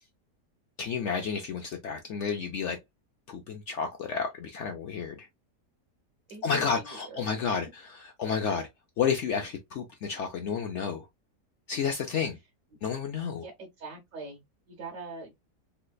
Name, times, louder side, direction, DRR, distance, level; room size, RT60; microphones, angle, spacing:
voice 1, 0.8-2.8 3.3-5.3 6.4-8.7 9.0-11.1 11.7-12.4 12.8-13.5, left 6 dB, 70° left, 0.6 m, -31 dB
voice 2, 6.3-7.4 13.3-14.4 14.7-15.3, right 3 dB, 60° right, 1.1 m, -43 dB
3.2 x 3.1 x 2.2 m
omnidirectional pair, 1.7 m